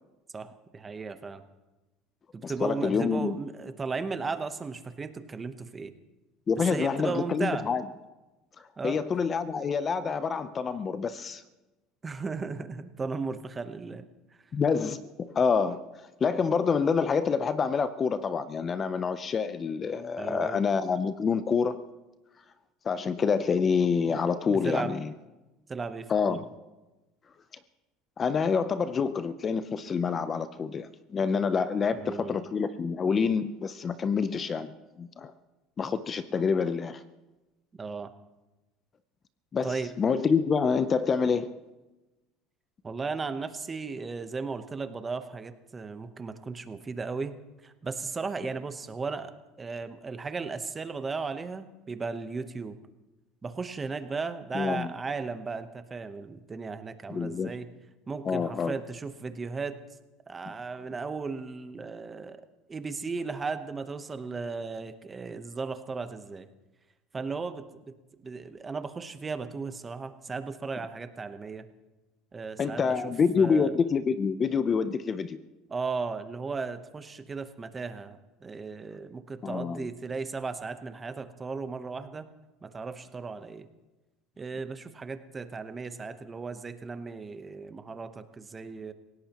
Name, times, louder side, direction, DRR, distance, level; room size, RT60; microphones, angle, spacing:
voice 1, 0.3-1.4 2.3-5.9 6.7-7.7 8.8-9.0 12.0-14.1 20.2-20.6 24.6-25.0 25.7-26.4 31.9-32.3 37.8-38.1 39.6-39.9 42.8-47.4 47.6-49.3 49.6-52.8 53.4-57.7 58.1-59.8 60.3-62.4 62.7-66.5 67.1-67.9 68.2-71.7 72.3-73.7 75.7-82.2 82.6-83.7 84.4-88.9, right 4 dB, 20° right, 1.0 m, -36 dB
voice 2, 2.4-3.4 6.5-7.8 8.8-11.4 14.5-15.8 16.2-21.8 22.8-25.1 26.1-26.5 28.2-35.3 35.8-37.0 39.5-41.5 54.5-54.9 57.1-57.5 58.2-58.7 72.6-75.4 79.4-79.9, left 5 dB, 25° left, 0.6 m, -27 dB
28.0 x 17.5 x 3.0 m
cardioid pair, 140°, 0 cm